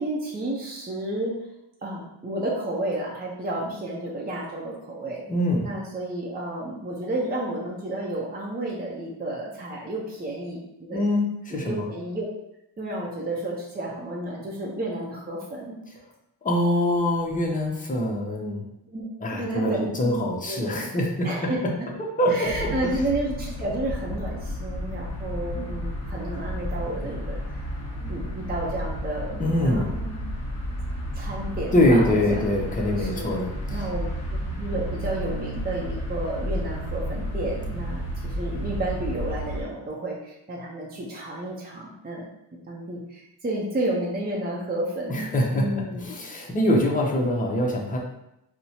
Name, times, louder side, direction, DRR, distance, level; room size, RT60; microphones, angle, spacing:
voice 1, 0.0-1.3 1.8-5.2 5.6-11.1 11.5-12.2 12.8-15.8 18.9-20.2 20.5-20.7 21.2-21.9 22.3-27.4 28.1-30.3 31.1-32.4 33.0-33.3 33.7-42.3 42.7-46.0, right 1 dB, 20° right, -4 dB, 0.6 m, -31 dB
voice 2, 5.3-5.7 10.9-11.8 16.4-18.6 19.2-21.3 22.2-22.9 28.0-28.3 29.4-29.9 31.7-33.5 45.1-45.6 46.0-48.0, left 1 dB, 20° left, -1 dB, 0.7 m, -24 dB
sound 1, 22.4-39.6, equal, 35° left, 1.1 m, -32 dB
4.2 x 2.1 x 2.7 m, 0.83 s
cardioid pair, 100°, 44 cm